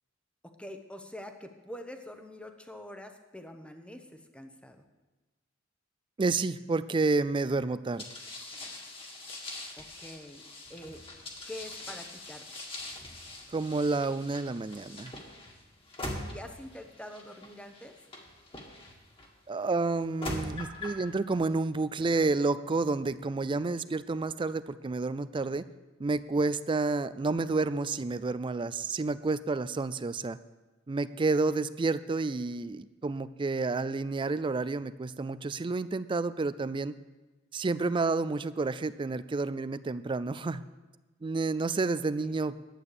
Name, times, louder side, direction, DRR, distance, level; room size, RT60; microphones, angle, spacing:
voice 1, 0.4-4.8 9.7-10.4 10.7-11.0 11.5-12.5 16.3-18.0 42.2-42.4, left 1 dB, 5° left, 6 dB, 0.9 m, -45 dB
voice 2, 6.2-8.0 13.5-15.1 19.5-25.6 26.0-30.4 30.9-36.9 37.5-40.6 41.2-42.6, right 3 dB, 25° right, 15 dB, 0.4 m, -30 dB
sound 1, 8.0-19.3 19.9-21.0, left 2 dB, 30° left, 1.8 m, -43 dB
11.5 x 8.5 x 6.7 m, 1.2 s
head